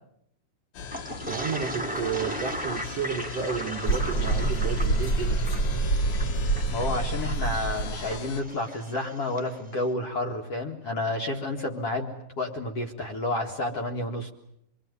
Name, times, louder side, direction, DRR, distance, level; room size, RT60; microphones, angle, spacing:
sound 1, 0.7-8.4, left 6 dB, 75° left, 3.1 m, -40 dB
Toilet flush, 0.9-9.5, right 1 dB, 5° right, 1.2 m, -37 dB
voice 1, 1.3-5.4, right 7 dB, 70° right, 1.5 m, -32 dB
sound 2, 3.9-8.2, right 2 dB, 30° left, 2.1 m, -26 dB
voice 2, 6.7-14.3, left 2 dB, 50° left, 2.2 m, -30 dB
27.0 x 22.5 x 9.6 m
omnidirectional pair, 4.5 m